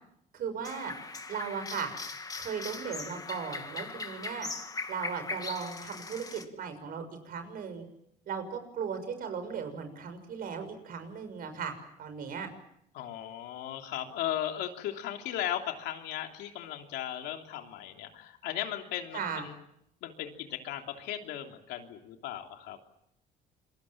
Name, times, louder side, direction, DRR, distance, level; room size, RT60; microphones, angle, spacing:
voice 1, 0.3-0.9 1.3-1.9 2.3-4.5 4.9-7.8 8.3-12.5 19.1-19.5, right 6 dB, 60° right, 8 dB, 6.4 m, -37 dB
sound 1, 0.6-6.4, left 3 dB, 20° left, 2.3 m, -40 dB
voice 2, 12.9-19.5 20.0-22.8, left 11 dB, 85° left, 4 dB, 3.2 m, -37 dB
27.5 x 23.0 x 7.5 m, 0.77 s
cardioid pair, 110°, 17 cm